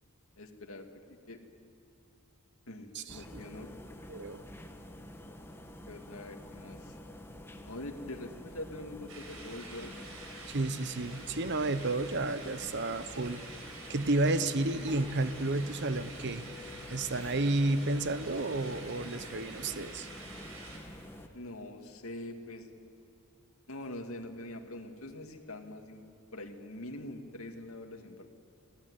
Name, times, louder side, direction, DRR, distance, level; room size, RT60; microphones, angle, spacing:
voice 1, 0.4-1.4 2.7-3.7 5.9-7.0 7.6-10.0 11.0-11.3 21.3-22.7 23.7-26.0 26.3-28.3, left 1 dB, 70° left, 4 dB, 2.3 m, -44 dB
voice 2, 2.9-3.4 4.1-4.4 10.5-13.4 13.9-16.4 16.9-20.1, right 2 dB, 55° right, 12 dB, 1.0 m, -31 dB
sound 1, 3.1-21.3, left 1 dB, 10° left, 1.4 m, -48 dB
sound 2, 9.1-20.8, right 3 dB, 70° right, 5.2 m, -48 dB
Giggle, 14.9-16.8 17.1-21.4, right 1 dB, 35° right, 4.4 m, -56 dB
30.0 x 18.0 x 9.8 m, 2.5 s
head